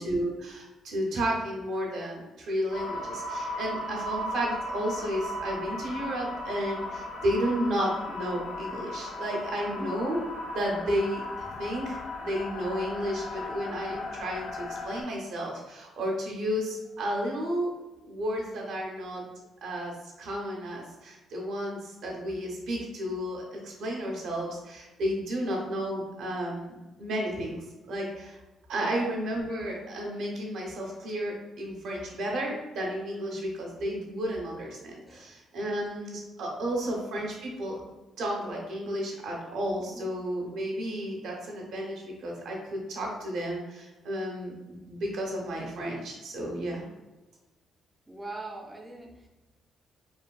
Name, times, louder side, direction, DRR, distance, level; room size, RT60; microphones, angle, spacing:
voice 1, 0.0-10.2 10.5-17.7 18.0-19.3 19.6-28.4 28.7-37.8 38.2-46.9, equal, 75° right, -1 dB, 0.8 m, -32 dB
sound 1, 2.7-15.0, left 2 dB, 65° left, 0.6 m, -36 dB
voice 2, 28.8-29.2 35.0-35.3 36.5-36.9 39.9-40.1 48.1-49.3, right 2 dB, 15° right, 0 dB, 0.4 m, -42 dB
3.3 x 2.3 x 2.3 m, 1.1 s
cardioid pair, 90°, 0 cm